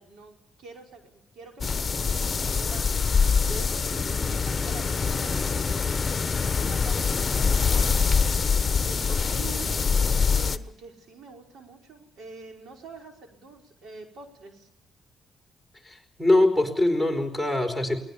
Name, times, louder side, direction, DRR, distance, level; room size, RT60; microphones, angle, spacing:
voice 1, 0.0-6.1 6.6-8.1 8.8-9.7 10.3-14.7, right 3 dB, 70° right, 2 dB, 5.3 m, -45 dB
sound 1, 1.6-10.6, left 5 dB, 30° left, 1.1 m, -24 dB
voice 2, 15.8-18.0, left 2 dB, 5° right, 7 dB, 4.5 m, -23 dB
22.5 x 20.0 x 7.0 m, 0.73 s
cardioid pair, 90°, 0 cm